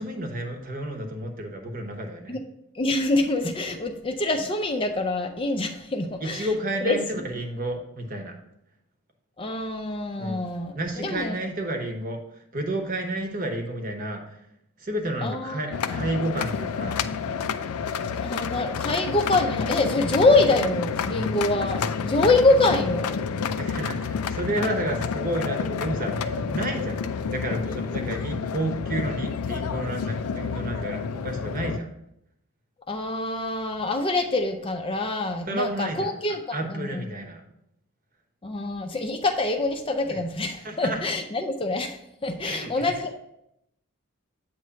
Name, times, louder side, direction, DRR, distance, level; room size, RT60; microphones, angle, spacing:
voice 1, 0.0-2.4 6.2-8.3 10.2-10.4 10.7-14.4 14.8-17.1 23.6-27.0 27.3-31.9 35.5-37.4 40.1-40.2 40.6-41.1 42.4-42.9, right 1 dB, 40° right, 4 dB, 1.0 m, -31 dB
voice 2, 2.8-6.5 6.8-7.0 9.4-10.7 11.0-11.4 15.2-15.6 18.2-23.1 32.9-37.0 38.4-42.0 42.2-43.2, left 2 dB, 25° left, 4 dB, 0.5 m, -25 dB
sound 1, 15.7-31.8, left 6 dB, 90° left, 0.4 m, -29 dB
8.4 x 3.1 x 5.6 m, 0.79 s
head